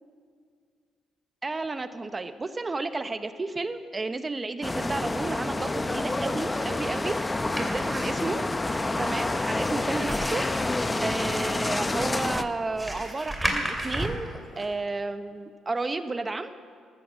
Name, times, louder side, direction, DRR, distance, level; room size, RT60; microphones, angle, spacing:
voice 1, 1.4-7.2 7.5-8.4 9.0-10.5 11.0-14.3 14.6-16.5, right 3 dB, 25° right, 10 dB, 0.9 m, -32 dB
sound 1, 4.6-12.4, left 2 dB, 20° left, 0.7 m, -28 dB
sound 2, 7.1-14.7, right 1 dB, 5° right, 2.7 m, -35 dB
14.0 x 13.5 x 7.5 m, 2.1 s
cardioid pair, 90°, 0 cm